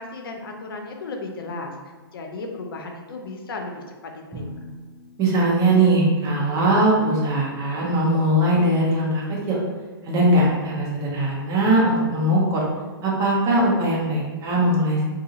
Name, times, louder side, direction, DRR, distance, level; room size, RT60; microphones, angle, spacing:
voice 1, 0.0-1.7 2.1-4.7, left 3 dB, 70° left, 3 dB, 0.6 m, -35 dB
Drum, 4.3-6.3, equal, ahead, 0.9 m, -41 dB
voice 2, 5.2-9.6 10.0-12.6 13.0-15.0, right 1 dB, 25° right, -4 dB, 1.0 m, -20 dB
2.7 x 2.6 x 3.9 m, 1.3 s
hypercardioid pair, 130°, 13 cm